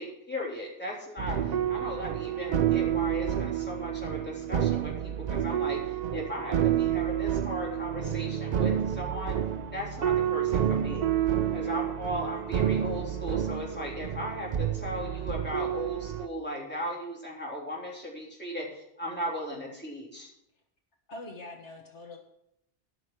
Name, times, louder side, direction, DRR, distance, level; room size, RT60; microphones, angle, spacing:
voice 1, 0.0-9.4 9.7-11.1 11.5-20.3, equal, 10° left, -4 dB, 3.5 m, -37 dB
sound 1, 1.2-16.3, right 10 dB, 55° right, 0.5 m, -29 dB
voice 2, 21.1-22.2, left 2 dB, 75° left, 2 dB, 1.9 m, -43 dB
13.0 x 6.3 x 7.6 m, 0.79 s
omnidirectional pair, 1.2 m